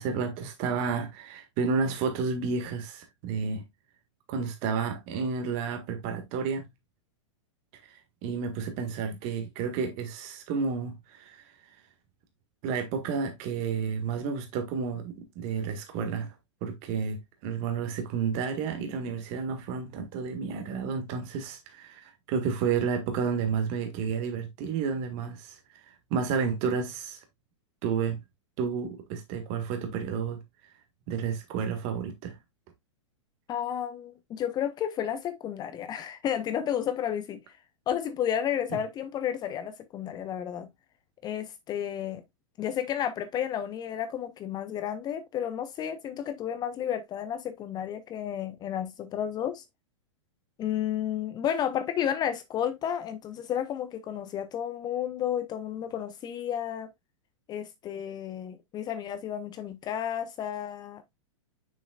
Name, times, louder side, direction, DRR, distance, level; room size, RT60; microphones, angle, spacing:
voice 1, 0.0-3.6 4.3-6.7 7.9-11.5 12.6-16.3 16.6-25.6 26.1-27.2 27.8-28.2 28.6-30.4 31.1-32.4, right 5 dB, 45° right, 1.6 m, -31 dB
voice 2, 33.5-37.4 37.9-40.7 41.2-42.2 42.6-49.6 50.6-56.9 57.5-61.3, left 9 dB, 25° left, 0.5 m, -32 dB
6.8 x 6.3 x 2.3 m
hypercardioid pair, 120°, 16 cm